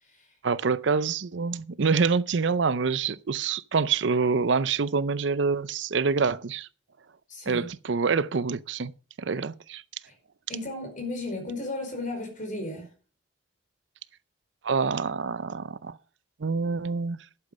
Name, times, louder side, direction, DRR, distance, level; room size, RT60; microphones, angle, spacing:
voice 1, 0.4-6.7 7.5-8.9 9.2-9.8 14.6-16.0 16.4-17.2, right 5 dB, 70° right, 0.6 m, -26 dB
voice 2, 7.3-7.7 10.0-10.1 10.5-12.9, left 2 dB, 45° left, 5.0 m, -35 dB
11.5 x 8.5 x 5.2 m
head